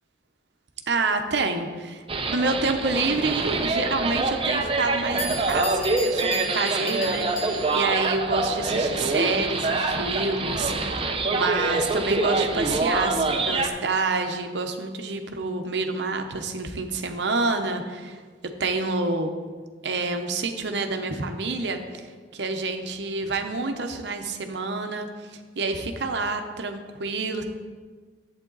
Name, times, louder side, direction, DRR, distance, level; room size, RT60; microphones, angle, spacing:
voice 1, 0.9-18.2 18.6-19.3 19.8-22.0 22.3-27.4, right 3 dB, 70° right, 6 dB, 0.9 m, -28 dB
sound 1, 2.1-13.7, right 3 dB, 30° right, 0.7 m, -25 dB
Bell, 4.8-4.9 5.2-8.0, left 1 dB, 50° left, 1.5 m, -36 dB
11.0 x 8.1 x 4.0 m, 1.5 s
head